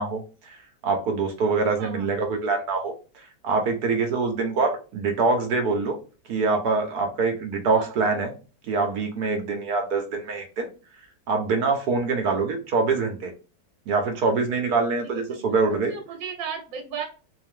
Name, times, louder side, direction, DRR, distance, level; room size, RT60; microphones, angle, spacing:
voice 1, 0.0-2.9 3.4-6.0 6.3-8.3 8.7-10.7 11.3-13.3 13.9-15.9, right 4 dB, 65° right, 4 dB, 1.3 m, -24 dB
voice 2, 1.8-2.1 7.7-7.9 15.0-15.4 15.9-17.1, right 6 dB, 85° right, 4 dB, 1.6 m, -35 dB
4.0 x 2.7 x 3.6 m, 0.34 s
omnidirectional pair, 2.0 m